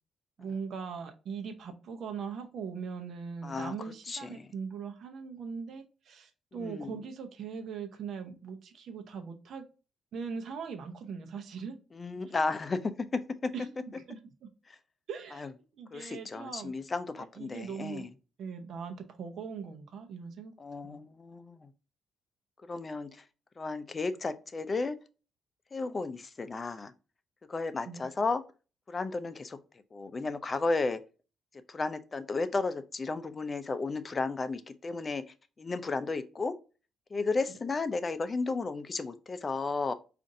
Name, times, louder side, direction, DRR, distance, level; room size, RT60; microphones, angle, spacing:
voice 1, 0.4-9.6 10.1-11.8 13.5-14.2 15.1-15.5 15.8-16.7 17.2-18.1 18.4-20.5 20.8-20.9 27.9-28.0 37.5-37.6, right 6 dB, 65° right, 0.7 m, -40 dB
voice 2, 3.4-3.7 4.1-4.5 6.5-7.0 11.9-13.5 14.7-14.8 15.4-15.5 15.9-18.1 20.6-21.7 22.7-23.2 23.6-25.0 25.7-26.9 27.5-28.4 28.9-29.6 29.9-31.0 31.7-35.2 35.6-36.5 37.1-39.9, left 3 dB, 30° left, 0.4 m, -33 dB
5.0 x 2.5 x 2.6 m
cardioid pair, 90°, 0 cm